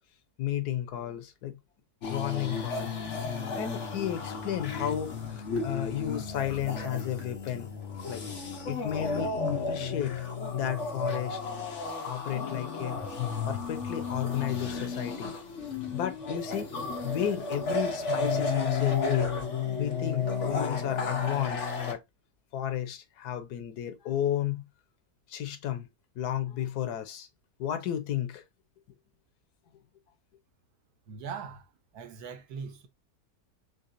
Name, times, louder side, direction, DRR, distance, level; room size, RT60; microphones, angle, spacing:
voice 1, 0.4-1.6 2.1-3.0 3.4-7.7 8.1-8.2 8.7-10.2 10.5-13.0 13.5-15.3 15.9-16.7 17.0-19.3 19.7-22.0 22.5-24.6 25.3-25.9 26.1-27.3 27.6-28.4, left 11 dB, 85° left, 1.3 m, -33 dB
sound 1, 2.0-21.9, left 4 dB, 55° left, 1.2 m, -33 dB
sound 2, 13.6-20.1, right 4 dB, 60° right, 1.4 m, -51 dB
voice 2, 31.1-31.7 31.9-32.9, right 6 dB, 75° right, 1.3 m, -40 dB
4.1 x 3.3 x 2.6 m
omnidirectional pair, 1.6 m